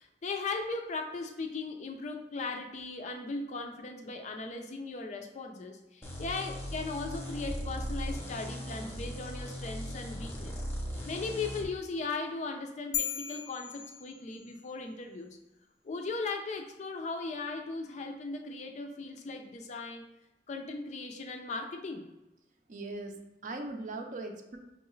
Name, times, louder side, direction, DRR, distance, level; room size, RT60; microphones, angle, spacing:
voice 1, 0.0-10.6 11.1-15.4 15.8-20.1 20.5-22.1, left 3 dB, 40° left, 4 dB, 0.4 m, -38 dB
sound 1, 6.0-11.7, equal, 15° left, 0.7 m, -38 dB
sound 2, 12.9-14.7, left 9 dB, 85° left, 0.5 m, -37 dB
voice 2, 22.7-24.6, right 2 dB, 45° right, 4 dB, 0.5 m, -40 dB
5.4 x 2.3 x 3.1 m, 1.0 s
head